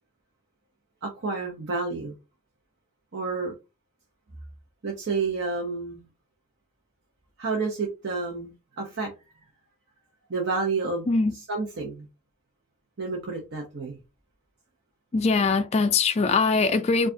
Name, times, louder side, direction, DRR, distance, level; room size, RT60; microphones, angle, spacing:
voice 1, 1.0-2.1 3.1-3.5 4.8-6.0 7.4-9.1 10.3-11.1 11.5-12.1 13.0-14.0, right 4 dB, 55° right, 0.9 m, -30 dB
voice 2, 15.1-17.1, left 4 dB, 30° left, 0.3 m, -22 dB
4.6 x 2.5 x 2.7 m
head